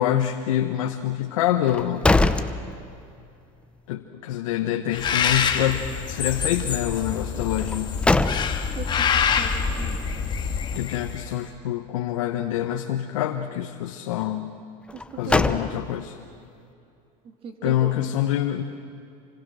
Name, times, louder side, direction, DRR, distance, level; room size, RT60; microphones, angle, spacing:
voice 1, 0.0-2.1 3.9-8.0 10.7-14.5 15.2-16.2 17.6-18.6, left 11 dB, 85° left, 5 dB, 1.2 m, -26 dB
sound 1, 1.6-3.3 3.7-3.8 7.6-8.9 14.9-16.2, left 2 dB, 5° left, 0.7 m, -23 dB
Bird, 4.9-11.3, left 6 dB, 25° left, 1.7 m, -26 dB
voice 2, 8.8-10.0 15.1-15.4 17.2-18.0, right 5 dB, 35° right, 4 dB, 2.9 m, -38 dB
27.5 x 25.0 x 6.4 m, 2.6 s
supercardioid pair, 125°, 17 cm